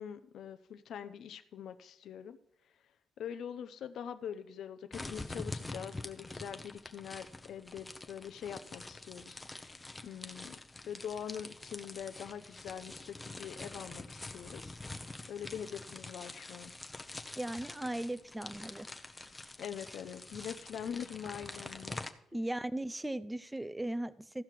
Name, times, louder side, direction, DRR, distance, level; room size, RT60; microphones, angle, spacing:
voice 1, 0.0-2.4 3.2-10.5 10.9-14.8 15.3-16.7 19.6-22.0 22.3-22.4, left 8 dB, 70° left, 10 dB, 0.6 m, -43 dB
sound 1, 4.9-22.1, left 2 dB, 15° left, 0.8 m, -46 dB
voice 2, 17.4-18.9 22.3-24.4, right 1 dB, 10° right, 16 dB, 0.5 m, -37 dB
15.0 x 5.8 x 4.6 m, 0.78 s
cardioid pair, 90°, 0 cm